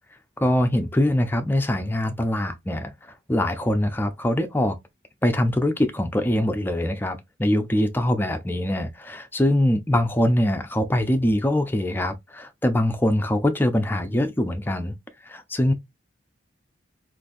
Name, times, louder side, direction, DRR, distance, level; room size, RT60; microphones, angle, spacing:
voice 1, 0.4-2.9 3.3-4.8 5.2-14.9 15.3-15.7, left 1 dB, 10° left, 0.4 m, -23 dB
3.8 x 2.6 x 2.5 m
head